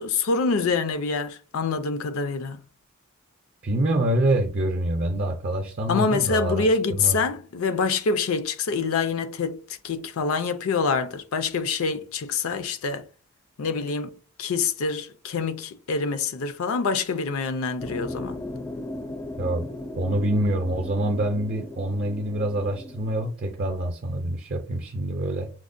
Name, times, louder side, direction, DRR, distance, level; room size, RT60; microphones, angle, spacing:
voice 1, 0.0-2.6 5.9-13.0 13.6-18.4, left 4 dB, 75° left, 0.4 m, -26 dB
voice 2, 3.6-7.2 19.4-19.7 20.0-25.5, right 1 dB, 45° right, 0.5 m, -26 dB
sound 1, 17.8-23.3, left 1 dB, 15° left, 0.4 m, -37 dB
5.9 x 2.1 x 2.5 m
head